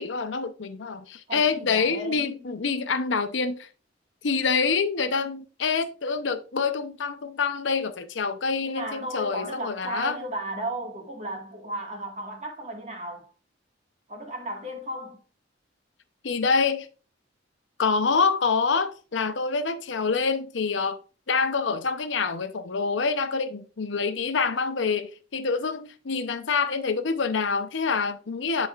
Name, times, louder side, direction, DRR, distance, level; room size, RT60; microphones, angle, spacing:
voice 1, 0.0-3.7 4.2-10.2 16.2-16.9 17.8-21.0 21.3-28.7, left 5 dB, 75° left, 0.7 m, -26 dB
voice 2, 1.3-2.5 8.7-13.3 14.1-15.2, right 1 dB, 40° right, 1.7 m, -35 dB
11.0 x 4.2 x 2.4 m
head